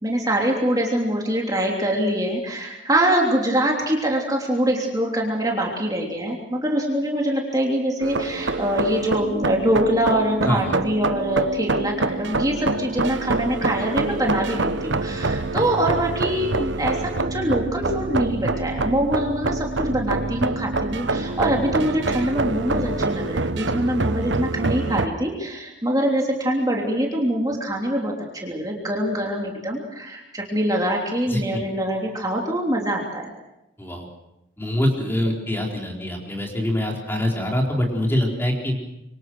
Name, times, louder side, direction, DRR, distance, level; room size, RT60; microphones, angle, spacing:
voice 1, 0.0-33.3, right 1 dB, 20° right, -1 dB, 3.3 m, -24 dB
sound 1, 8.0-25.1, right 3 dB, 70° right, 1.0 m, -26 dB
voice 2, 10.4-10.8 15.6-15.7 31.3-31.6 33.8-34.1 34.6-38.7, left 1 dB, 10° left, 0 dB, 4.3 m, -24 dB
26.5 x 24.5 x 6.3 m, 0.89 s
head